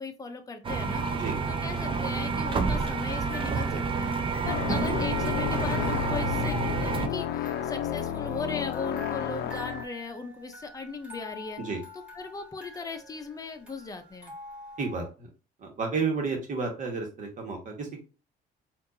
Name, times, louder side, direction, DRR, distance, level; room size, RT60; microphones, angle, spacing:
voice 1, 0.0-4.2 4.4-11.6 11.9-14.3, left 4 dB, 20° left, 6 dB, 0.7 m, -38 dB
sound 1, 0.6-7.1, right 4 dB, 30° right, 0.6 m, -29 dB
sound 2, 2.8-15.1, left 1 dB, 10° right, 1.8 m, -46 dB
sound 3, 4.4-9.8, left 9 dB, 70° left, 0.5 m, -31 dB
voice 2, 14.8-15.3 15.6-18.0, right 4 dB, 50° right, 2 dB, 1.5 m, -31 dB
4.4 x 2.6 x 2.7 m, 0.34 s
cardioid pair, 110°, 17 cm